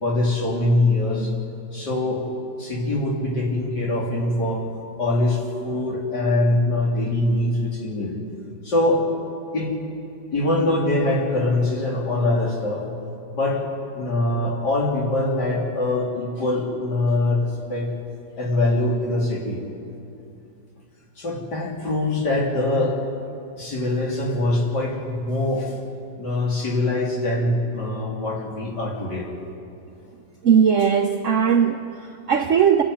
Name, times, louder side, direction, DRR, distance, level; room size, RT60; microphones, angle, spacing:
voice 1, 0.0-1.3 1.7-2.2 2.6-4.7 5.0-8.1 8.6-9.0 9.5-9.7 10.3-12.9 13.3-13.6 14.0-17.9 18.4-19.6 21.2-23.0 23.5-25.8 26.2-29.3, left 2 dB, 55° left, -3 dB, 3.8 m, -23 dB
voice 2, 30.4-32.8, right 7 dB, 60° right, 6 dB, 0.8 m, -19 dB
28.0 x 11.0 x 9.4 m, 2.7 s
omnidirectional pair, 2.2 m